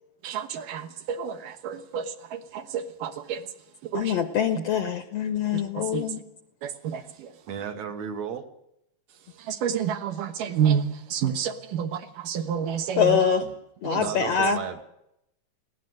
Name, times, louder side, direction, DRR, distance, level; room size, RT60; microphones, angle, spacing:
voice 1, 0.2-3.5 3.8-4.2 4.6-4.7 5.5-6.1 6.6-7.3 9.4-13.2 13.8-14.0, right 8 dB, 75° right, 7 dB, 2.9 m, -29 dB
voice 2, 3.9-6.2 13.0-13.4 13.8-14.6, left 7 dB, 70° left, 9 dB, 1.6 m, -24 dB
voice 3, 7.5-8.5 13.4-13.5 14.0-14.8, right 7 dB, 60° right, 7 dB, 2.3 m, -34 dB
21.0 x 17.0 x 7.8 m, 0.80 s
omnidirectional pair, 3.9 m